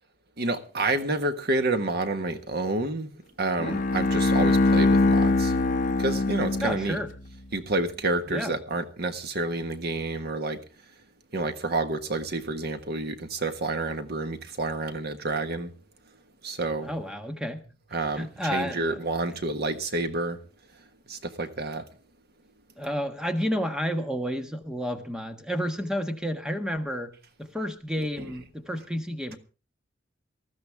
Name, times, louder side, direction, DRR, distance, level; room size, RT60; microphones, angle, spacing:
voice 1, 0.4-3.1 3.4-5.5 6.0-7.0 7.5-10.6 11.3-15.7 16.4-16.9 17.9-20.4 21.1-21.8 28.2-28.3, right 2 dB, 55° right, 1.5 m, -29 dB
Bowed string instrument, 3.6-7.1, left 2 dB, 45° left, 1.0 m, -22 dB
voice 2, 6.6-7.1 8.3-8.5 16.8-17.6 18.2-19.0 22.8-27.1 27.4-29.4, equal, 5° right, 1.3 m, -30 dB
20.0 x 14.0 x 3.5 m
head